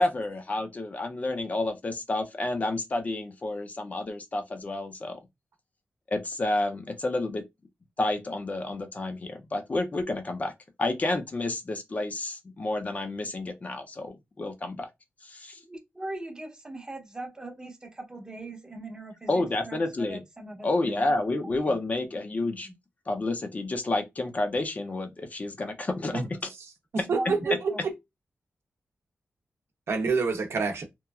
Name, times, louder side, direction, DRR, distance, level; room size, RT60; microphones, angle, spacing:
voice 1, 0.0-5.2 6.1-7.4 8.0-10.5 10.8-14.9 15.2-15.6 19.3-20.2 20.6-22.7 23.1-26.2, left 2 dB, 35° left, 0.5 m, -30 dB
voice 2, 15.7-21.1 21.4-21.8 22.6-22.7 27.0-27.8, right 2 dB, 15° right, 0.7 m, -40 dB
voice 3, 26.6-27.9 29.9-30.8, right 4 dB, 70° right, 0.6 m, -28 dB
2.9 x 2.4 x 2.2 m
wide cardioid pair, 145°, 4 cm